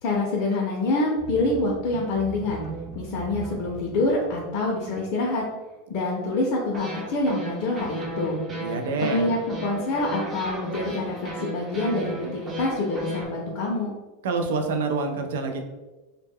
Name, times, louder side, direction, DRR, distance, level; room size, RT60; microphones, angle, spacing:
voice 1, 0.0-2.7 2.9-5.4 5.9-8.4 9.0-13.9, left 2 dB, 55° left, -3 dB, 0.5 m, -26 dB
sound 1, 1.2-5.0 6.7-13.3, right 2 dB, 25° right, 0.5 m, -36 dB
voice 2, 8.6-9.2 14.2-15.6, right 4 dB, 80° right, 5 dB, 0.4 m, -27 dB
2.1 x 2.1 x 3.5 m, 1.2 s
supercardioid pair, 135°, 0 cm